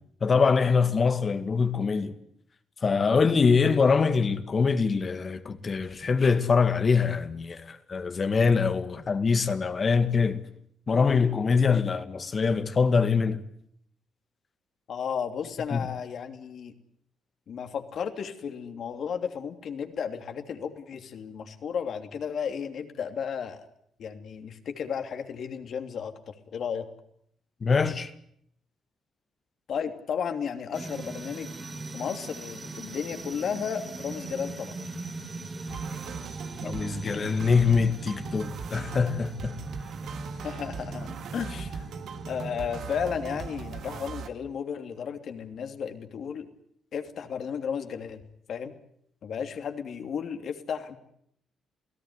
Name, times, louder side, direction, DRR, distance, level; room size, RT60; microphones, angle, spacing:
voice 1, 0.2-2.2 2.8-10.5 10.9-13.4 15.7-15.9 27.6-28.1 36.6-39.6, left 5 dB, 40° left, 2.0 m, -24 dB
voice 2, 14.9-16.7 17.5-23.7 24.0-26.9 29.7-31.5 31.9-34.7 40.3-41.9 42.3-46.5 46.9-48.2 48.5-48.7 49.2-51.0, left 7 dB, 60° left, 3.0 m, -34 dB
sound 1, 30.7-44.0, right 3 dB, 30° right, 4.0 m, -40 dB
sound 2, 35.7-44.3, right 6 dB, 70° right, 2.0 m, -40 dB
28.5 x 17.0 x 9.8 m
cardioid pair, 90°, 0 cm